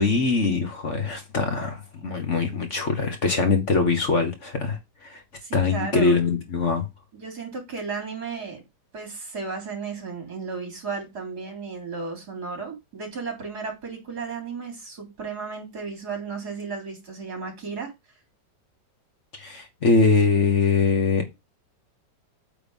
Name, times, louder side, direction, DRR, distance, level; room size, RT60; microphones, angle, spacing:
voice 1, 0.0-5.2 5.5-6.9 19.3-21.2, left 4 dB, 45° left, 1.6 m, -22 dB
voice 2, 5.4-6.2 7.1-8.6 8.9-17.9, right 4 dB, 65° right, 3.8 m, -34 dB
8.6 x 3.6 x 5.4 m
omnidirectional pair, 1.9 m